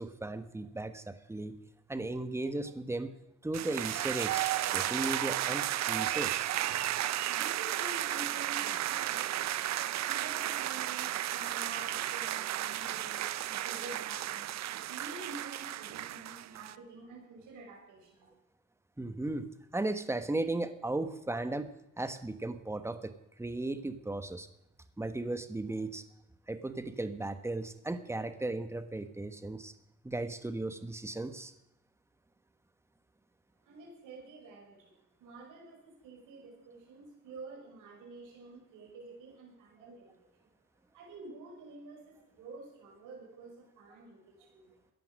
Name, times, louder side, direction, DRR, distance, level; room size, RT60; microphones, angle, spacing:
voice 1, 0.0-1.5 1.9-3.1 3.4-6.5 19.0-21.7 22.0-23.1 23.4-24.5 25.0-26.0 26.5-29.7 30.0-31.5, right 2 dB, 10° right, 10 dB, 1.2 m, -36 dB
sound 1, 3.5-16.8, right 13 dB, 65° right, 0.6 m, -33 dB
voice 2, 7.3-9.6 10.1-14.5 14.9-18.3 33.6-34.9 35.2-40.3 40.9-44.7, right 3 dB, 90° right, -1 dB, 5.7 m, -48 dB
15.5 x 10.5 x 6.4 m, 0.86 s
cardioid pair, 90°, 30 cm